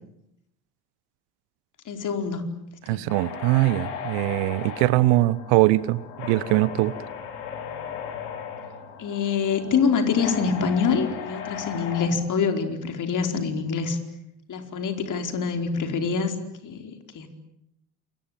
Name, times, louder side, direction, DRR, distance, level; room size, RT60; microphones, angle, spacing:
voice 1, 1.8-2.5 2.9-3.0 9.0-14.0 14.5-16.4 16.6-17.3, left 5 dB, 40° left, 6 dB, 4.8 m, -25 dB
voice 2, 2.9-6.9, right 18 dB, 60° right, 19 dB, 1.2 m, -22 dB
sound 1, 3.1-12.1, left 7 dB, 70° left, 5.4 m, -37 dB
28.5 x 23.5 x 8.9 m, 0.80 s
hypercardioid pair, 65°, 45 cm